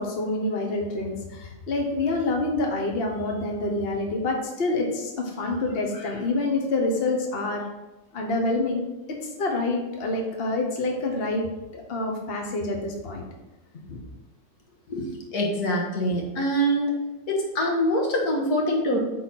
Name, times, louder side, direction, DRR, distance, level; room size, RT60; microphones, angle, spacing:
voice 1, 0.0-7.6 8.1-8.8 9.2-11.5 11.7-13.2 13.9-14.0, left 2 dB, 45° left, 1 dB, 1.3 m, -27 dB
voice 2, 15.3-16.9 17.3-19.0, equal, 90° left, -1 dB, 2.0 m, -24 dB
9.2 x 4.2 x 4.2 m, 1.0 s
omnidirectional pair, 1.6 m